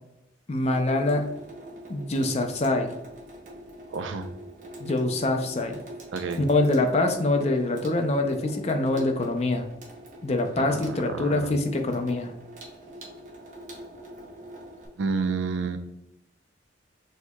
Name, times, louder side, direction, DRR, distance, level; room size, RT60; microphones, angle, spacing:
voice 1, 0.5-1.3 1.9-2.9 4.8-5.8 6.5-9.7 10.2-12.3, left 2 dB, 35° left, 5 dB, 0.4 m, -25 dB
Water tap faucet / Sink (filling or washing), 0.6-14.9, right 1 dB, 40° right, 0.7 m, -44 dB
voice 2, 3.9-4.3 6.1-6.4 10.6-11.5 15.0-15.8, right 4 dB, 80° right, 8 dB, 0.4 m, -30 dB
6.3 x 2.9 x 2.2 m, 0.86 s
head